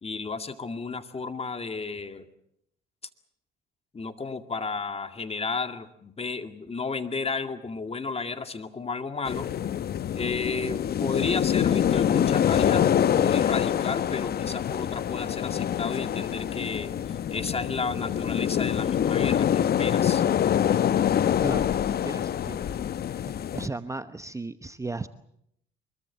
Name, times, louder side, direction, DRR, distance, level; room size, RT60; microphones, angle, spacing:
voice 1, 0.0-2.3 3.9-9.5 10.1-20.2, left 4 dB, 30° left, 9 dB, 2.3 m, -33 dB
sound 1, 9.3-23.7, left 9 dB, 50° left, 0.9 m, -25 dB
voice 2, 21.4-21.7 22.0-22.7 23.0-25.1, right 3 dB, 15° right, 12 dB, 1.0 m, -36 dB
24.0 x 22.5 x 7.3 m, 0.73 s
hypercardioid pair, 65°, 21 cm